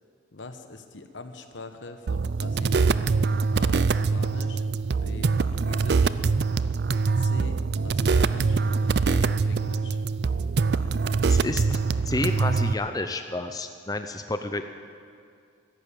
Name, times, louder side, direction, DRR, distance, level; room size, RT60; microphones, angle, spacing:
voice 1, 0.3-3.0 3.5-4.7 5.0-6.1 7.2-10.0, left 2 dB, 80° left, 7 dB, 1.2 m, -42 dB
sound 1, 2.1-12.7, right 4 dB, 60° right, 0.4 m, -24 dB
voice 2, 11.3-11.8 12.1-14.6, left 2 dB, 20° left, 7 dB, 0.6 m, -30 dB
14.0 x 11.5 x 8.9 m, 2.3 s
head